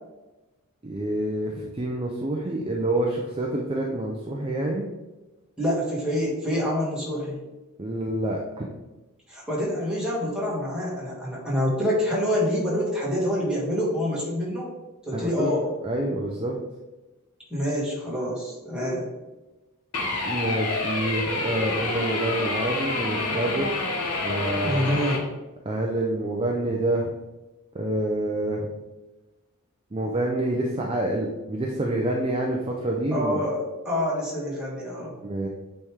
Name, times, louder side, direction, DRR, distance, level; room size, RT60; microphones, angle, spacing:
voice 1, 0.8-4.9 7.8-8.7 15.1-15.5 15.8-16.6 20.2-23.8 24.2-24.9 25.6-27.1 27.7-28.7 29.9-33.4 35.2-35.5, right 1 dB, 25° right, -1 dB, 0.5 m, -27 dB
voice 2, 5.6-7.4 9.3-14.7 15.0-15.6 17.5-19.1 24.6-25.2 33.1-33.6 33.8-35.1, equal, 5° right, -6 dB, 1.9 m, -26 dB
sound 1, 19.9-25.2, left 2 dB, 85° left, 1.2 m, -28 dB
8.4 x 3.2 x 3.5 m, 1.1 s
head